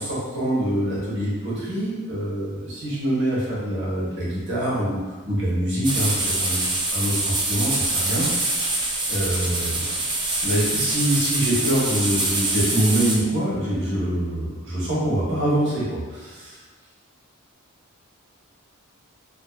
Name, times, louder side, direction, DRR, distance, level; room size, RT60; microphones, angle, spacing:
voice 1, 0.0-6.6 6.9-8.6 9.1-9.9 10.4-16.6, right 1 dB, 60° right, -8 dB, 0.9 m, -25 dB
sound 1, 5.8-13.2, right 2 dB, 20° right, 0.4 m, -25 dB
2.5 x 2.5 x 2.3 m, 1.4 s
head